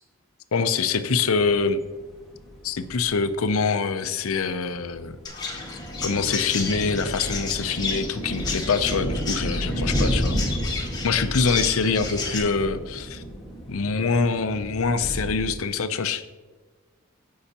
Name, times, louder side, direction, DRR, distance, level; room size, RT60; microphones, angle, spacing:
voice 1, 0.5-1.8 2.6-5.6 6.0-10.4 11.0-13.2 13.7-16.3, left 5 dB, 85° left, 11 dB, 0.6 m, -25 dB
sound 1, 1.4-15.5, equal, ahead, 2.3 m, -32 dB
Chirp tweet, 5.3-12.4, left 4 dB, 20° left, 1.2 m, -33 dB
15.0 x 5.6 x 2.9 m, 1.4 s
head